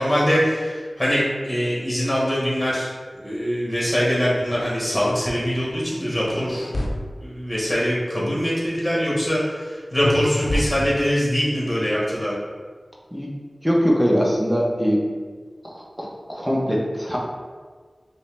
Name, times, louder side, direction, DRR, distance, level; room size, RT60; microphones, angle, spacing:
voice 1, 0.0-6.7 7.2-12.3, equal, 20° left, -6 dB, 1.3 m, -23 dB
sound 1, 6.3-6.9 10.0-11.2, left 1 dB, 70° left, 0.6 m, -26 dB
voice 2, 13.6-15.1 15.7-17.2, equal, ahead, -3 dB, 0.8 m, -22 dB
5.4 x 2.2 x 3.3 m, 1.5 s
wide cardioid pair, 65°, 0 cm